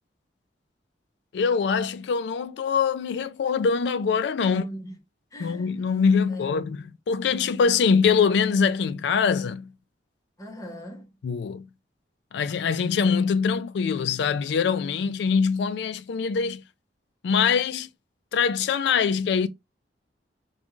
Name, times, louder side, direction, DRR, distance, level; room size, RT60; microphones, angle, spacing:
voice 1, 1.3-4.6 5.4-6.8 7.1-9.7 11.2-11.7 12.3-16.6 17.2-17.9 18.3-19.5, left 6 dB, 65° left, 0.3 m, -23 dB
voice 2, 4.4-4.9 5.3-5.7 6.3-6.5 10.4-11.1, equal, 20° left, 0.8 m, -39 dB
2.5 x 2.3 x 2.9 m
head